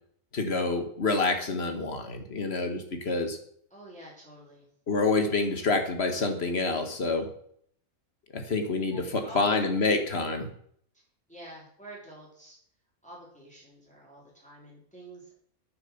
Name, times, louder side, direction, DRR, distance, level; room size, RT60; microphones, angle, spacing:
voice 1, 0.3-3.4 4.9-7.3 8.3-10.5, left 3 dB, 45° left, 6 dB, 1.7 m, -27 dB
voice 2, 3.7-4.7 8.9-10.1 11.3-12.5 13.0-15.3, right 1 dB, 5° left, -4 dB, 3.3 m, -48 dB
9.2 x 7.5 x 7.0 m, 0.63 s
omnidirectional pair, 1.6 m